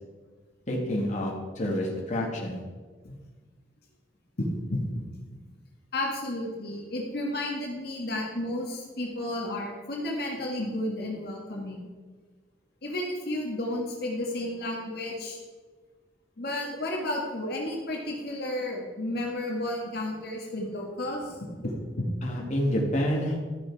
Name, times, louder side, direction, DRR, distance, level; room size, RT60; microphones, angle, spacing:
voice 1, 0.7-2.6 22.2-23.4, equal, 40° left, -1 dB, 1.9 m, -28 dB
voice 2, 4.4-5.0 5.3-5.4 5.9-11.8 12.8-15.4 16.4-22.1, left 1 dB, 60° left, -1 dB, 1.8 m, -32 dB
13.0 x 6.5 x 4.7 m, 1.4 s
head